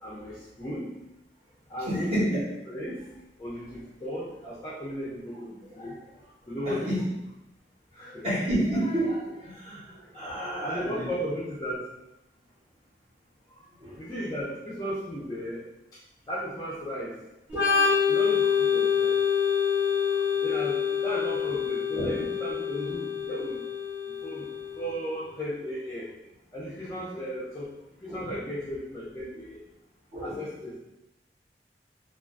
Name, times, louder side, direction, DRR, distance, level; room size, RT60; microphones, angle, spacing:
voice 1, 0.0-0.9 1.7-3.0 3.4-6.0 6.5-6.9 7.9-8.2 10.6-11.8 14.0-15.6 16.3-17.1 18.1-19.1 20.4-23.6 24.2-24.5 24.8-26.1 26.5-27.7 28.0-29.6 30.2-30.8, equal, 20° left, -8 dB, 0.3 m, -35 dB
voice 2, 1.9-2.4 5.7-6.0 6.6-7.0 8.0-11.3 13.8-14.0 21.9-22.2 28.1-28.3 30.1-30.4, right 1 dB, 35° right, -9 dB, 0.9 m, -30 dB
Organ, 17.5-25.0, left 7 dB, 5° right, 0.7 m, -26 dB
2.3 x 2.2 x 2.4 m, 0.94 s
head